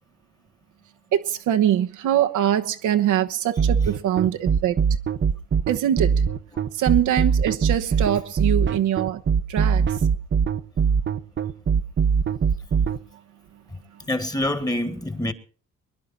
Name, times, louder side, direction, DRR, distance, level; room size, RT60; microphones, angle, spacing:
voice 1, 1.1-4.8 5.7-6.2 6.7-9.2 9.5-9.8 13.9-14.0, right 10 dB, 80° right, 1.2 m, -23 dB
sound 1, 3.6-13.0, right 6 dB, 40° right, 0.9 m, -21 dB
voice 2, 14.1-15.3, left 1 dB, 10° left, 1.8 m, -25 dB
23.5 x 10.5 x 4.2 m
cardioid pair, 90°, 30 cm